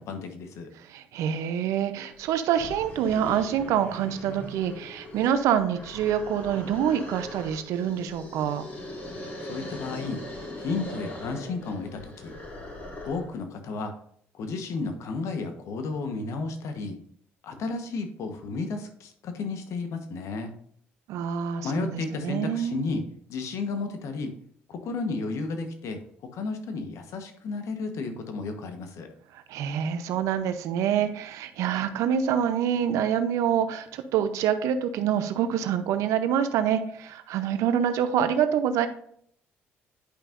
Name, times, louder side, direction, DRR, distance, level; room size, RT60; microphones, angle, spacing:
voice 1, 0.0-0.7 9.5-10.2 10.6-12.3 13.0-13.9 14.3-17.0 17.4-20.5 21.6-23.0 23.3-24.3 24.7-26.0 26.3-29.1, left 4 dB, 70° left, 6 dB, 1.2 m, -32 dB
voice 2, 0.8-8.6 21.1-22.9 29.3-38.9, right 9 dB, 75° right, 10 dB, 0.7 m, -26 dB
sound 1, 2.2-2.3 2.6-13.4, left 1 dB, 35° left, 3.3 m, -40 dB
10.0 x 5.6 x 2.6 m, 0.65 s
supercardioid pair, 65°, 5 cm